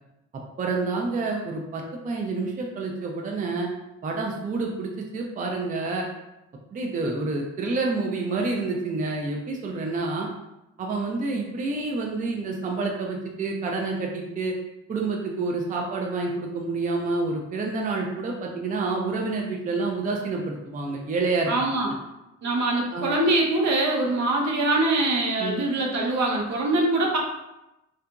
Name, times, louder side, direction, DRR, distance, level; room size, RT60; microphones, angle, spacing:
voice 1, 0.6-3.7 4.0-6.1 6.7-10.3 10.8-14.5 14.9-21.7 22.9-23.1 25.4-25.6, right 3 dB, 25° right, 0 dB, 0.4 m, -28 dB
voice 2, 21.5-21.9 22.4-27.2, right 2 dB, 65° right, -1 dB, 0.7 m, -23 dB
2.8 x 2.4 x 2.2 m, 0.93 s
cardioid pair, 90°, 30 cm